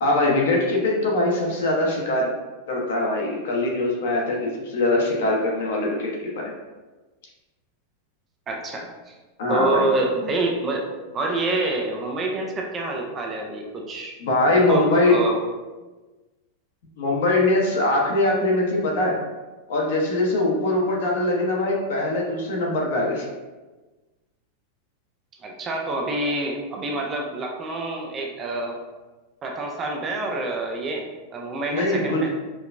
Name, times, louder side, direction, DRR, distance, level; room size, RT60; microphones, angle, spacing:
voice 1, 0.0-2.3 2.7-6.5 9.4-9.9 14.2-15.2 17.0-19.2 19.7-23.3 31.7-32.3, left 2 dB, 70° left, -2 dB, 0.9 m, -22 dB
voice 2, 8.5-9.1 9.5-10.9 11.1-14.1 14.5-15.4 25.4-28.8 29.4-32.3, right 2 dB, 15° right, 1 dB, 0.3 m, -27 dB
4.5 x 2.2 x 2.5 m, 1.2 s
supercardioid pair, 175°, 0 cm